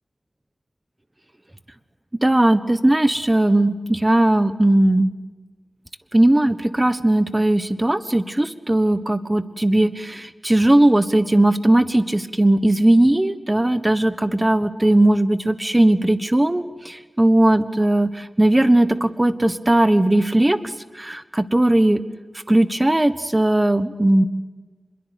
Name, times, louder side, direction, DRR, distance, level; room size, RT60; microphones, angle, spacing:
voice 1, 2.2-5.1 6.1-16.6 17.2-18.1 18.4-20.6 21.0-22.0 22.5-24.3, right 1 dB, 20° right, 13 dB, 1.3 m, -18 dB
25.0 x 22.0 x 8.3 m, 1.3 s
wide cardioid pair, 75°, 0 cm